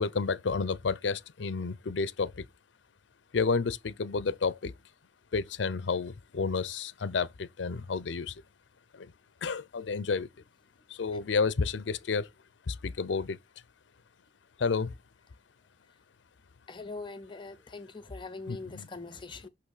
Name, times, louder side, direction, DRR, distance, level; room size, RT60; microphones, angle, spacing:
voice 1, 0.0-2.5 3.3-4.7 5.3-8.3 8.9-9.1 9.4-10.3 10.9-12.3 12.7-13.4 14.6-14.9 18.5-18.9, left 4 dB, 75° left, 0.6 m, -30 dB
voice 2, 16.7-19.5, left 3 dB, 25° left, 0.6 m, -42 dB
6.1 x 5.7 x 6.5 m
head